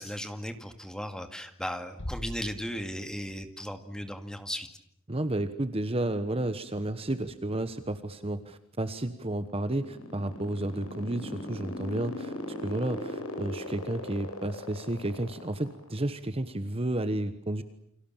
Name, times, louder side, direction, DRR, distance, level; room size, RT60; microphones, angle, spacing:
voice 1, 0.0-4.7, equal, 5° left, 7 dB, 2.2 m, -36 dB
Bass drum, 2.0-3.4, left 1 dB, 55° left, 2.1 m, -40 dB
voice 2, 5.1-12.3 12.6-17.6, right 1 dB, 25° right, 11 dB, 1.2 m, -32 dB
sound 1, 9.4-15.9, left 1 dB, 75° left, 6.8 m, -38 dB
29.5 x 25.5 x 7.4 m, 0.73 s
head